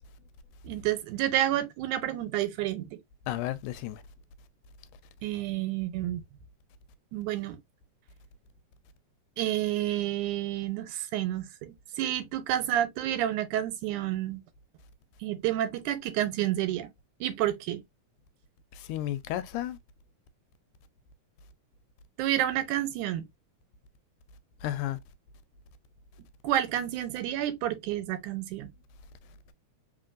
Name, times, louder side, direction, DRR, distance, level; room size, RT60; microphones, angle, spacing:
voice 1, 0.6-3.0 5.2-6.2 7.1-7.6 9.4-14.4 15.2-16.9 17.2-17.8 22.2-23.2 26.4-28.7, right 12 dB, 90° right, 2.2 m, -29 dB
voice 2, 3.3-4.0 18.8-19.8 24.6-25.0, left 13 dB, 90° left, 2.1 m, -32 dB
3.9 x 3.7 x 2.4 m
omnidirectional pair, 3.5 m